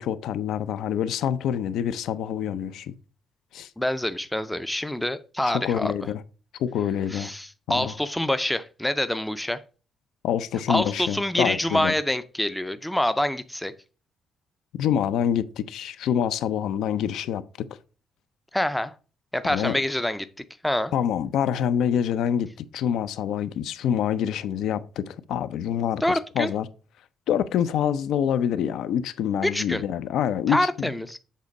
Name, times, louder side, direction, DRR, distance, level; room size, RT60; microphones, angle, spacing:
voice 1, 0.0-3.0 3.5-3.7 5.5-6.2 6.6-7.3 7.7-7.9 10.2-11.9 14.7-17.7 19.5-19.8 20.9-26.7 27.3-30.9, left 9 dB, 75° left, 0.5 m, -26 dB
voice 2, 3.8-5.9 7.1-9.6 10.7-13.7 18.5-18.9 19.3-20.3 20.6-20.9 26.0-26.5 29.4-29.8 30.5-31.2, left 1 dB, 5° left, 0.4 m, -26 dB
7.5 x 3.9 x 5.3 m
cardioid pair, 175°, 0 cm